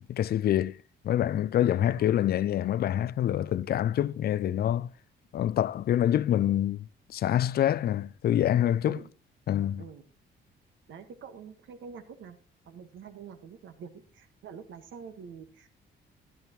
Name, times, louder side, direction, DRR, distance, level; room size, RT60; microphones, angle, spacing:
voice 1, 0.1-0.8 1.0-4.9 5.3-9.0 9.5-9.8, left 11 dB, 50° left, 0.4 m, -26 dB
voice 2, 1.7-2.1 8.8-9.1 9.8-10.0 10.9-12.4 12.6-15.7, right 6 dB, 75° right, 1.5 m, -46 dB
12.5 x 10.5 x 3.0 m
cardioid pair, 90°, 20 cm